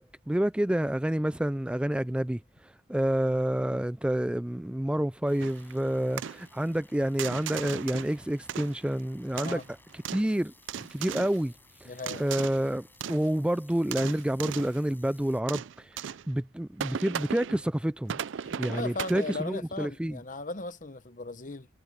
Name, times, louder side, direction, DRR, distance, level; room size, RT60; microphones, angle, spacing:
voice 1, 0.0-9.6 9.9-11.5 11.8-11.9 12.2-18.2 18.6-20.2, right 1 dB, 5° right, 0.3 m, -29 dB
sound 1, 5.3-15.4, left 3 dB, 10° left, 6.6 m, -59 dB
sound 2, 5.4-5.7 6.2-6.5 7.2-8.2 8.5-9.0 9.4-10.3 10.7-11.4 12.0-12.7 13.0-13.3 13.7-14.8 15.5-16.3 16.8-17.6 18.1-19.6, right 8 dB, 85° right, 0.4 m, -37 dB
voice 2, 9.3-9.6 11.8-12.2 18.4-21.7, left 3 dB, 45° left, 1.1 m, -37 dB
head